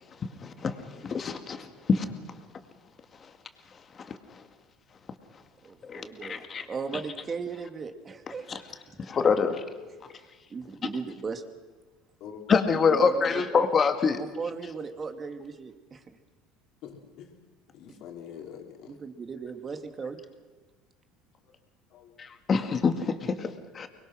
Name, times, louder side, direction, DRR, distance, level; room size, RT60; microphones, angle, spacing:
voice 1, 0.4-2.0 4.0-4.1 5.9-6.7 8.5-8.6 9.1-9.6 12.5-14.2 22.2-23.9, left 5 dB, 35° left, 7 dB, 2.1 m, -26 dB
voice 2, 5.6-6.4 6.7-8.5 9.3-9.4 10.5-11.4 12.9-13.6 14.1-16.0 18.9-20.2, right 5 dB, 30° right, 7 dB, 2.2 m, -36 dB
voice 3, 16.8-17.3 17.7-18.9 21.9-22.1, left 8 dB, 60° left, 2 dB, 3.6 m, -44 dB
24.5 x 21.5 x 6.3 m, 1.3 s
hypercardioid pair, 80°, 0 cm